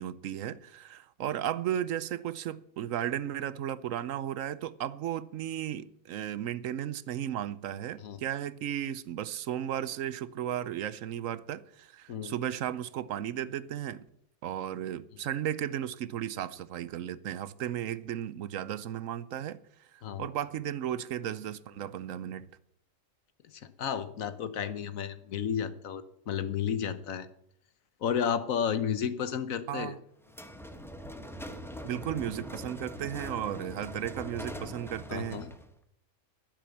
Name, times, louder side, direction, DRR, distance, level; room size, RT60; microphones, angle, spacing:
voice 1, 0.0-14.1 14.4-22.5 29.7-30.0 31.8-35.4, right 10 dB, 75° right, 1.0 m, -35 dB
voice 2, 23.5-27.3 28.0-29.9 35.1-35.5, left 8 dB, 80° left, 1.4 m, -32 dB
sound 1, 30.3-35.7, equal, ahead, 1.0 m, -42 dB
11.5 x 10.5 x 7.1 m
omnidirectional pair, 1.4 m